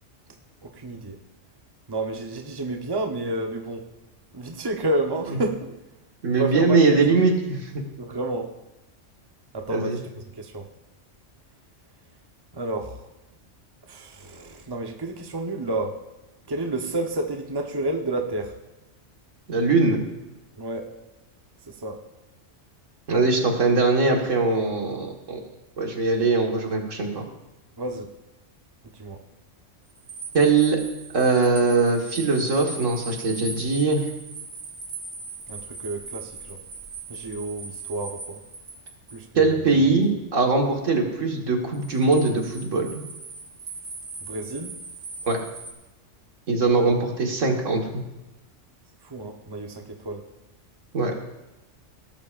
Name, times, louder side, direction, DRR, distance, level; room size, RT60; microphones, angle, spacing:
voice 1, 0.6-1.2 1.9-3.8 4.3-5.8 6.4-7.2 8.0-8.5 9.5-10.7 12.5-13.0 13.9-16.0 16.5-18.6 20.6-20.9 21.7-22.0 27.8-28.1 28.9-29.2 35.5-36.6 37.1-38.4 39.1-39.7 44.3-44.8 49.0-50.2, right 2 dB, 20° right, 3 dB, 0.9 m, -30 dB
voice 2, 6.2-7.8 9.7-10.0 19.5-20.0 23.1-25.4 25.8-27.2 30.3-30.8 31.1-34.0 39.4-43.1 45.3-45.4 46.5-48.0 50.9-51.1, right 3 dB, 80° right, 2 dB, 2.0 m, -21 dB
sound 1, 29.9-39.2 41.7-45.7, right 3 dB, 65° right, 2.0 m, -40 dB
18.0 x 12.0 x 2.5 m, 0.98 s
omnidirectional pair, 1.3 m